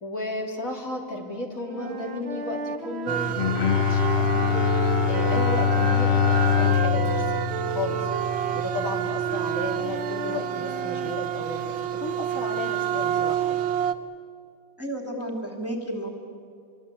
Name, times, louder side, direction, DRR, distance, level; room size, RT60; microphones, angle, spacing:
voice 1, 0.0-4.6 5.1-8.0 8.5-13.6, left 2 dB, 40° left, 0 dB, 3.5 m, -34 dB
Wind instrument woodwind instrument, 1.6-6.0 6.3-11.1, right 5 dB, 40° right, 1.2 m, -34 dB
sound 1, 3.1-13.9, right 9 dB, 80° right, 1.7 m, -29 dB
Bowed string instrument, 3.3-8.6, left 9 dB, 70° left, 0.5 m, -24 dB
voice 2, 14.8-16.1, right 1 dB, 5° right, 2 dB, 3.0 m, -32 dB
26.0 x 24.5 x 8.5 m, 2.4 s
omnidirectional pair, 2.1 m